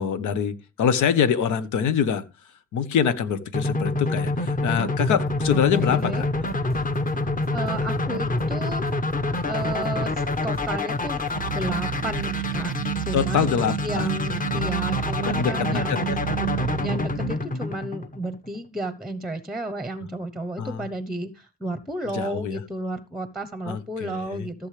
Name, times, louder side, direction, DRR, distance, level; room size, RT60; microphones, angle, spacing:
voice 1, 0.0-2.2 2.7-6.3 13.1-14.7 15.2-16.2 20.6-20.9 22.1-22.6 23.7-24.5, left 7 dB, 75° left, 13 dB, 1.2 m, -25 dB
sound 1, 3.5-18.5, left 2 dB, 25° left, 1.3 m, -27 dB
sound 2, 5.3-12.9, left 1 dB, 60° left, 5.0 m, -47 dB
voice 2, 5.5-6.3 7.5-9.1 9.5-11.2 11.5-13.5 13.8-16.2 16.8-24.7, right 1 dB, ahead, 10 dB, 0.9 m, -33 dB
sound 3, 11.3-17.3, right 14 dB, 70° right, 0.5 m, -30 dB
15.0 x 7.3 x 3.3 m, 0.29 s
cardioid pair, 90°, 30 cm